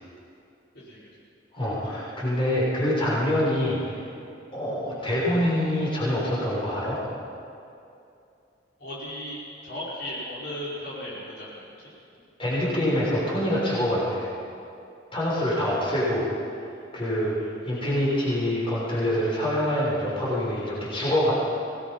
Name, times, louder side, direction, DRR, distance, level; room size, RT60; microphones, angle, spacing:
voice 1, 1.5-3.8 4.5-7.0 12.4-14.2 15.1-16.3 16.9-17.4 17.6-21.3, left 1 dB, 30° left, -7 dB, 6.6 m, -25 dB
voice 2, 8.8-11.6 15.4-15.8, left 1 dB, 55° left, -8 dB, 5.4 m, -36 dB
24.5 x 19.0 x 5.6 m, 2.6 s
head